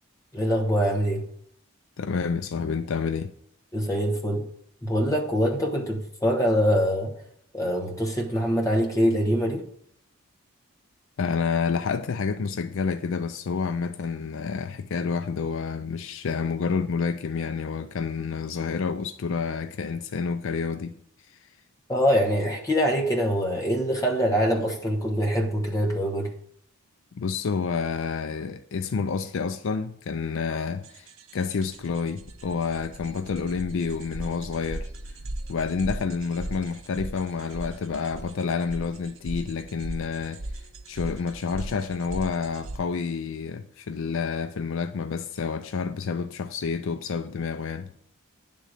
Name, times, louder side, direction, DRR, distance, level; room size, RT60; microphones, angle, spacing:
voice 1, 0.3-1.3 3.7-4.5 4.8-7.1 7.5-9.7 21.9-26.3, equal, 15° left, 1.1 m, -24 dB
voice 2, 2.0-3.3 11.2-21.0 21.3-21.4 27.1-31.1 31.3-34.9 35.5-40.4 40.9-47.9, left 5 dB, 60° left, 0.4 m, -29 dB
sound 1, 30.8-42.8, right 1 dB, 60° right, 0.9 m, -38 dB
10.0 x 3.8 x 6.5 m
head